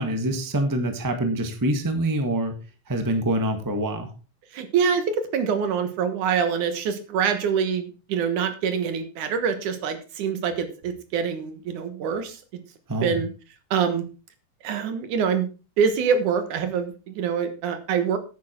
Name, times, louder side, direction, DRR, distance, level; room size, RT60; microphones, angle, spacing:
voice 1, 0.0-2.5 2.9-4.1 12.9-13.2, right 1 dB, 25° right, 6 dB, 0.4 m, -25 dB
voice 2, 4.5-12.4 13.0-13.3 13.7-14.1 14.6-15.5 15.8-18.2, right 6 dB, 70° right, 9 dB, 2.8 m, -25 dB
10.5 x 9.4 x 4.5 m, 0.33 s
omnidirectional pair, 3.8 m